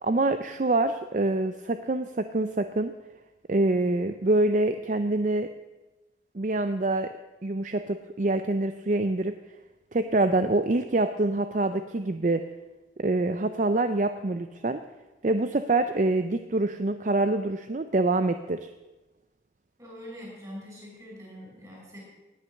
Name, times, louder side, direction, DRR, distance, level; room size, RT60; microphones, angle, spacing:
voice 1, 0.0-2.9 3.5-5.5 6.3-7.1 7.4-9.4 9.9-12.4 13.0-14.8 15.2-18.7, right 2 dB, 40° right, 9 dB, 0.5 m, -25 dB
voice 2, 19.8-22.0, equal, 20° right, -3 dB, 6.1 m, -43 dB
17.5 x 9.8 x 6.5 m, 1.1 s
head